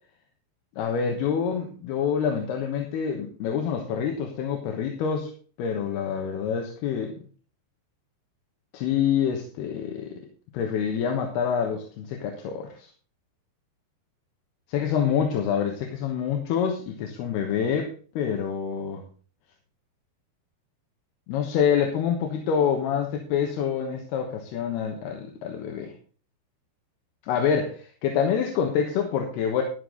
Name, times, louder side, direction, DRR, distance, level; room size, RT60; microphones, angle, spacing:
voice 1, 0.8-5.3 5.6-7.1 8.7-10.2 10.5-12.9 14.7-19.0 21.3-25.9 27.2-29.6, left 7 dB, 75° left, 3 dB, 3.2 m, -26 dB
11.0 x 11.0 x 3.9 m, 0.40 s
omnidirectional pair, 4.9 m